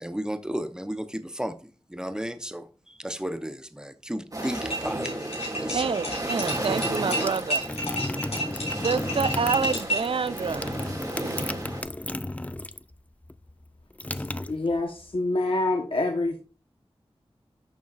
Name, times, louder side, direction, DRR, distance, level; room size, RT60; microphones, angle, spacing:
voice 1, 0.0-5.9, equal, 5° right, 0.8 m, -34 dB
sound 1, 4.3-11.8, right 1 dB, 35° right, 2.3 m, -33 dB
sound 2, 4.4-10.2, equal, 90° left, 4.6 m, -31 dB
voice 2, 5.7-7.6 8.7-10.7, right 5 dB, 60° right, 0.4 m, -28 dB
sound 3, 6.2-12.9 13.2-15.1, left 1 dB, 15° left, 0.4 m, -34 dB
voice 3, 14.1-16.4, left 2 dB, 60° left, 1.1 m, -27 dB
10.5 x 6.9 x 2.5 m
wide cardioid pair, 65°, 10 cm